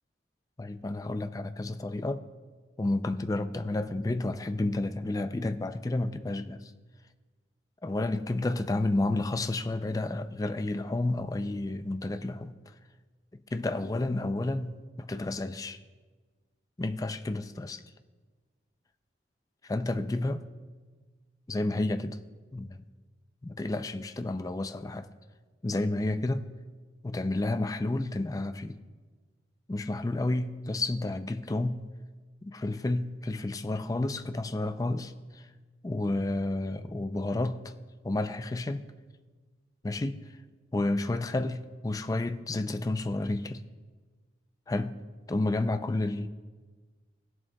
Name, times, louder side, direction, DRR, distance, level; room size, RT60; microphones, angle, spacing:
voice 1, 0.6-2.3 2.8-6.7 7.8-12.6 13.5-15.8 16.8-17.8 19.6-20.4 21.5-22.2 22.5-22.8 23.4-25.1 25.6-26.5 27.0-28.8 29.7-31.9 32.4-35.4 35.8-37.7 38.0-38.9 39.8-40.3 40.7-43.6 44.7-45.0 45.3-46.3, left 2 dB, 20° left, 10 dB, 0.3 m, -31 dB
16.5 x 11.0 x 2.2 m, 1.4 s
head